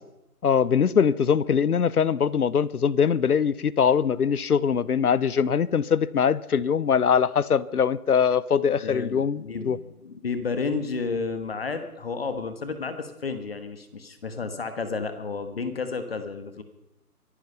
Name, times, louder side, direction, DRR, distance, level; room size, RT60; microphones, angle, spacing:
voice 1, 0.4-9.8, left 7 dB, 70° left, 0.8 m, -22 dB
voice 2, 8.8-16.6, left 4 dB, 40° left, 1.3 m, -31 dB
24.0 x 11.0 x 5.5 m
figure-of-eight pair, 155°, 47 cm